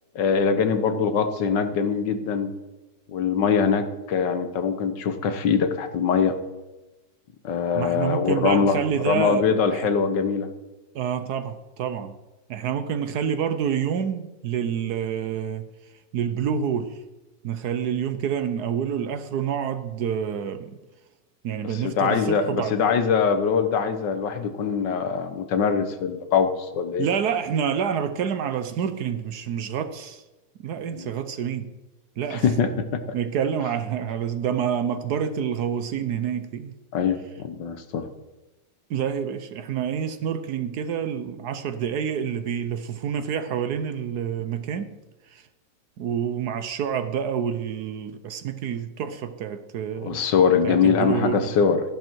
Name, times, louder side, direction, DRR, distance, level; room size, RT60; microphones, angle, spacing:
voice 1, 0.2-2.5 3.1-6.4 7.4-8.8 9.1-10.5 21.8-27.1 30.9-31.1 32.3-33.0 36.9-38.1 50.0-51.9, left 6 dB, 70° left, 1.6 m, -23 dB
voice 2, 7.7-9.9 10.9-12.1 12.5-15.7 16.1-17.0 17.4-20.8 21.4-22.8 27.0-30.2 30.6-31.8 32.2-32.5 33.1-36.7 38.9-45.0 45.3-45.4 46.0-50.2 50.6-51.5, right 8 dB, 65° right, 1.2 m, -28 dB
14.0 x 11.0 x 4.5 m
omnidirectional pair, 2.0 m